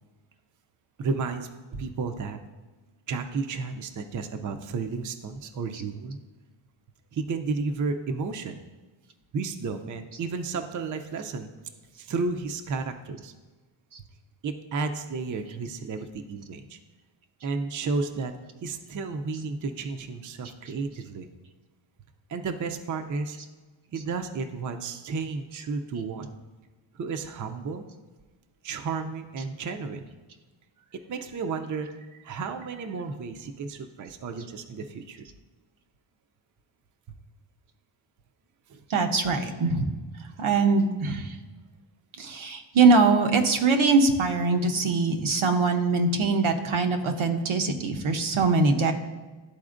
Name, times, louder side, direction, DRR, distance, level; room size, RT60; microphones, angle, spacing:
voice 1, 1.0-2.4 3.1-6.2 7.1-8.6 9.3-11.5 12.0-13.3 14.4-16.8 17.4-18.3 18.6-21.3 22.3-23.4 23.9-26.4 26.9-27.8 28.6-30.1 30.9-35.2 38.7-38.8, right 4 dB, 40° right, 7 dB, 0.5 m, -32 dB
voice 2, 38.9-39.9 40.4-41.3 42.2-48.9, right 4 dB, 80° right, 5 dB, 0.8 m, -22 dB
12.0 x 4.2 x 2.5 m, 1.3 s
wide cardioid pair, 130°, 48 cm